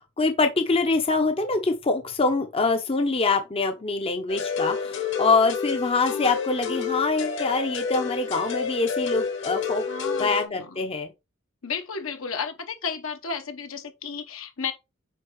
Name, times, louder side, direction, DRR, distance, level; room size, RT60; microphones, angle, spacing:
voice 1, 0.2-9.8 10.2-11.1, left 3 dB, 25° left, 0.6 m, -24 dB
sound 1, 4.3-10.5, left 5 dB, 60° left, 1.3 m, -29 dB
voice 2, 9.9-10.8 11.6-14.7, left 5 dB, 75° left, 1.1 m, -33 dB
9.1 x 3.4 x 3.1 m
head